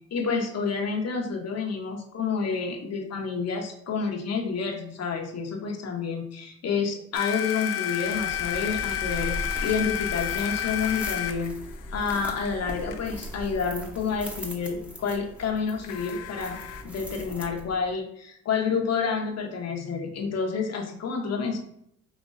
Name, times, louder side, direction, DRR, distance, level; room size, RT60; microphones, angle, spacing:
voice 1, 0.1-11.6 11.9-16.6 16.8-21.6, left 5 dB, 55° left, 3 dB, 1.0 m, -29 dB
sound 1, 7.1-13.1 15.8-16.8, left 10 dB, 90° left, 0.5 m, -32 dB
sound 2, 8.0-17.9, equal, 5° right, 0.9 m, -39 dB
5.2 x 2.9 x 2.5 m, 0.71 s
cardioid pair, 90°, 30 cm